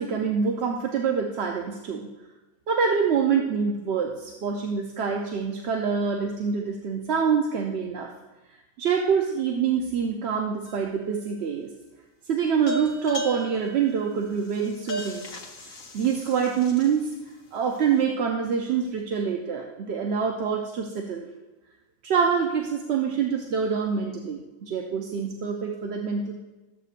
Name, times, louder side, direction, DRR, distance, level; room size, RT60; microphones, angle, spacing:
voice 1, 0.0-2.1 2.7-8.1 8.8-11.7 12.3-15.3 15.7-17.1 17.5-21.3 22.0-26.4, right 6 dB, 60° right, 1 dB, 0.8 m, -26 dB
sound 1, 10.7-11.3 12.7-17.1, equal, 75° left, 1.4 m, -36 dB
13.5 x 7.8 x 2.5 m, 1.1 s
omnidirectional pair, 1.4 m